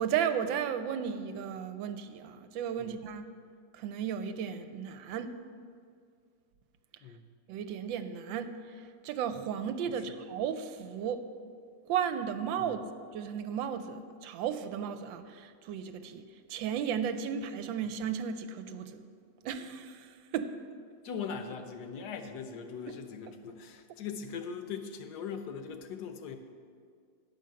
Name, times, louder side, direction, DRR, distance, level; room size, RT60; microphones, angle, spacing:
voice 1, 0.0-3.3 3.7-5.4 7.5-11.2 11.8-16.2 16.5-19.0 19.4-20.6, right 8 dB, 80° right, 10 dB, 1.3 m, -34 dB
voice 2, 21.0-26.4, left 6 dB, 65° left, 7 dB, 1.2 m, -40 dB
11.0 x 5.5 x 7.5 m, 2.1 s
omnidirectional pair, 2.1 m